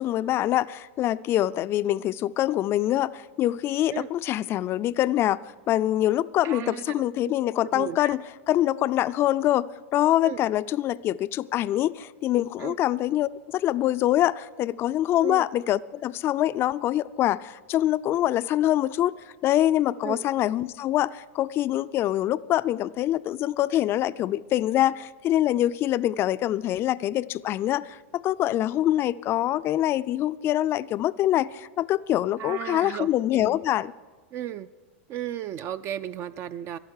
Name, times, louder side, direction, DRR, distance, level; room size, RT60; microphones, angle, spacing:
voice 1, 0.0-5.4 5.7-19.1 19.4-33.9, left 13 dB, 35° left, 0.4 m, -25 dB
voice 2, 6.4-7.3 7.6-8.2 10.2-10.4 12.6-12.8 15.2-15.5 20.0-20.2 32.4-33.5 34.3-34.7 35.1-36.8, right 10 dB, 35° right, 0.4 m, -35 dB
13.0 x 11.5 x 6.5 m
hypercardioid pair, 120°, 7 cm